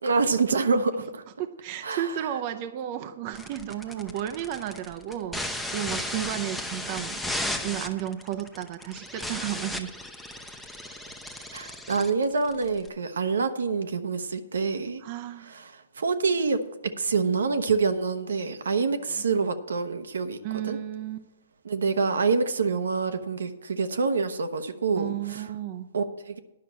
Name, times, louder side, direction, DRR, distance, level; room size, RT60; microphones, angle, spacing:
voice 1, 0.0-1.2 1.8-2.3 11.5-15.0 15.4-16.6 17.0-20.4 20.6-20.8 21.6-25.4 25.9-26.4, right 4 dB, 80° right, 8 dB, 0.9 m, -26 dB
voice 2, 1.4-7.2 7.6-10.0 15.0-15.6 19.2-19.3 20.4-21.3 24.9-25.9, right 11 dB, 40° right, 9 dB, 0.6 m, -33 dB
sound 1, 3.3-12.9, left 1 dB, ahead, 0.8 m, -35 dB
10.5 x 5.8 x 7.4 m, 1.0 s
hypercardioid pair, 140°, 0 cm